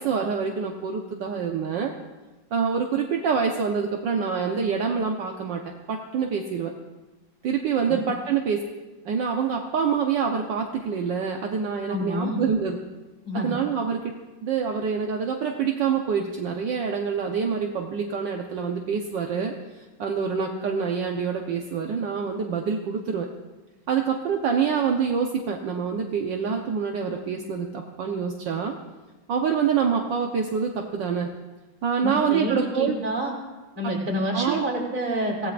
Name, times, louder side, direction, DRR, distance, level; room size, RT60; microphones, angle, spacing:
voice 1, 0.0-1.9 2.5-5.6 5.9-6.7 7.4-8.6 9.0-12.8 13.3-14.1 14.4-23.3 23.9-28.7 29.3-31.3 31.8-32.9 34.3-34.6, right 6 dB, 65° right, 1 dB, 1.6 m, -26 dB
voice 2, 11.9-12.4 13.3-13.5 32.0-33.3 33.8-35.5, right 1 dB, 45° right, -3 dB, 3.8 m, -28 dB
24.5 x 17.5 x 2.5 m, 1.2 s
omnidirectional pair, 2.2 m